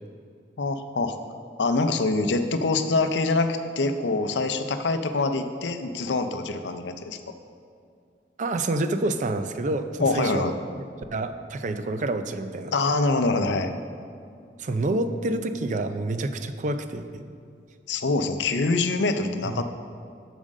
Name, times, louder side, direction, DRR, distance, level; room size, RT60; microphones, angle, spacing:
voice 1, 0.6-1.2 1.6-7.3 10.0-10.5 12.7-13.8 17.9-19.6, left 3 dB, 80° left, 9 dB, 0.5 m, -25 dB
voice 2, 8.4-10.8 11.1-12.7 14.6-17.2 19.4-19.6, right 2 dB, 45° right, 9 dB, 0.4 m, -28 dB
7.4 x 5.1 x 6.4 m, 2.3 s
head